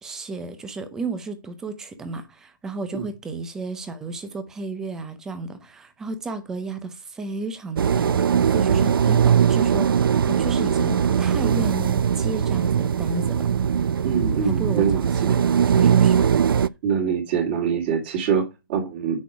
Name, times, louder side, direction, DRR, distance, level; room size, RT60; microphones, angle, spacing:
voice 1, 0.0-13.6 14.4-15.4 15.7-16.3, right 3 dB, 5° right, 0.6 m, -33 dB
sound 1, 7.8-16.7, right 8 dB, 80° right, 0.5 m, -20 dB
voice 2, 14.0-15.4 16.8-19.2, right 7 dB, 25° right, 2.2 m, -24 dB
8.5 x 6.3 x 4.7 m
hypercardioid pair, 175°, 12 cm